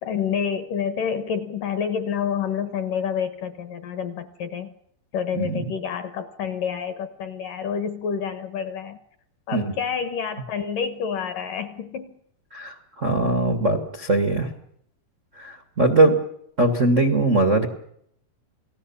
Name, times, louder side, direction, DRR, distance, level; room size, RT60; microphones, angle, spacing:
voice 1, 0.0-4.7 5.1-9.0 9.5-12.2, left 7 dB, 65° left, 11 dB, 2.3 m, -28 dB
voice 2, 5.3-5.6 9.5-9.7 12.5-14.5 15.4-16.2 16.6-17.7, right 2 dB, 75° right, 6 dB, 0.6 m, -21 dB
29.0 x 19.5 x 7.2 m, 0.72 s
omnidirectional pair, 5.1 m